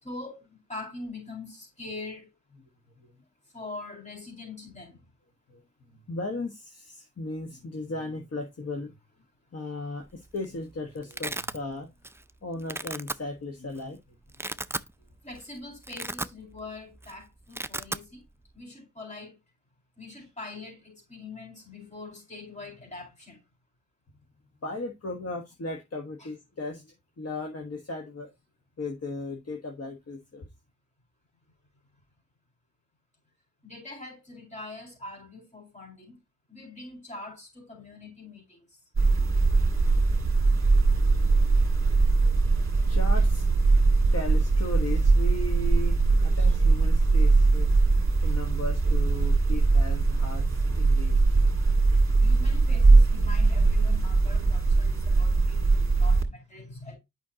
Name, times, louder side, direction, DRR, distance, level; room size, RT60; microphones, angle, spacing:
voice 1, 0.0-2.3 3.5-5.0 15.2-18.2 18.5-19.3 20.0-23.4 33.6-36.2 36.5-38.6 46.4-46.5 51.3-51.5 52.2-56.9, left 2 dB, 25° left, 4.3 m, -43 dB
voice 2, 5.9-8.9 9.5-11.9 12.4-14.6 24.6-28.3 28.8-30.5 42.0-42.1 42.9-43.5 44.1-47.7 48.2-51.2, left 2 dB, 55° left, 1.4 m, -36 dB
Domestic sounds home sounds, 10.1-10.5 10.7-11.6 12.0-12.3 12.6-13.2 13.8-13.9 14.2-14.9 15.3-15.4 15.8-16.7 16.9-17.1 17.4-18.0, right 2 dB, 10° right, 0.4 m, -34 dB
sound 1, 39.0-56.2, right 3 dB, 45° right, 1.8 m, -21 dB
8.9 x 5.6 x 2.8 m
wide cardioid pair, 85°, 30 cm